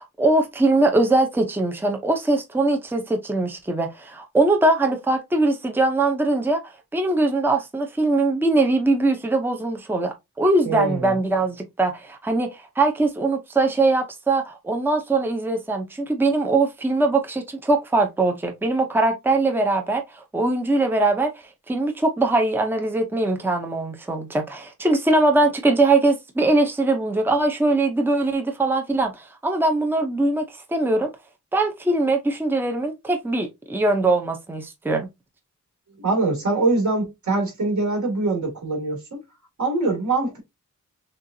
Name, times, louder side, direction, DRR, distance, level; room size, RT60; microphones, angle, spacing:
voice 1, 0.0-21.3 21.7-31.1 31.5-35.1, right 2 dB, 5° right, 0.7 m, -21 dB
voice 2, 10.6-11.1 35.9-39.2 39.6-40.4, right 3 dB, 65° right, 2.4 m, -23 dB
6.6 x 2.5 x 2.7 m
wide cardioid pair, 160°, 31 cm